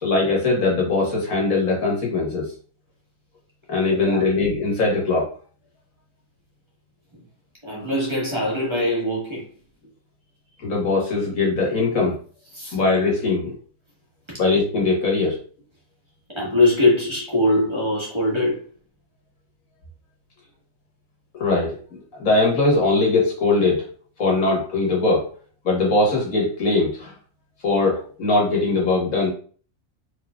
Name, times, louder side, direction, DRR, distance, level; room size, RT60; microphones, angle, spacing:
voice 1, 0.0-2.5 3.7-5.3 10.6-12.2 12.7-13.5 14.4-15.4 21.3-21.8 22.2-23.9 24.2-25.3 25.6-27.1 27.6-29.3, left 3 dB, 90° left, -2 dB, 2.0 m, -21 dB
voice 2, 3.9-4.3 7.6-9.5 12.5-12.8 16.3-18.6, left 2 dB, 20° right, -4 dB, 1.4 m, -22 dB
4.6 x 3.8 x 2.4 m, 0.42 s
omnidirectional pair, 1.4 m